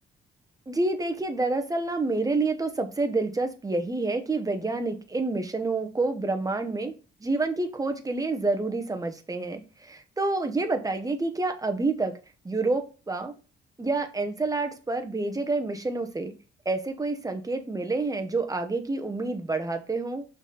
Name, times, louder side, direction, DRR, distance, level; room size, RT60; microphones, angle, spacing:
voice 1, 0.7-7.0 7.2-12.1 12.4-13.3 13.8-16.3 16.6-20.3, right 3 dB, 15° right, 1.1 m, -28 dB
5.9 x 4.2 x 4.1 m
cardioid pair, 90°, 20 cm